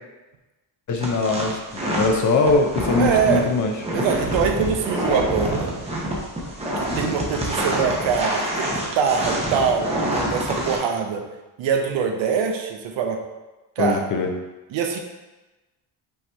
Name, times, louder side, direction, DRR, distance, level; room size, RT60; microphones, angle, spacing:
voice 1, 0.9-3.7 13.8-14.3, left 3 dB, 40° left, 3 dB, 0.5 m, -21 dB
sound 1, 1.0-10.8, right 1 dB, 15° right, 0.7 m, -26 dB
voice 2, 3.0-3.5 3.9-5.8 6.8-11.2 11.6-13.2 13.8-14.1 14.7-15.0, right 6 dB, 70° right, 4 dB, 0.7 m, -23 dB
5.4 x 2.9 x 3.4 m, 1.1 s
cardioid pair, 160°, 47 cm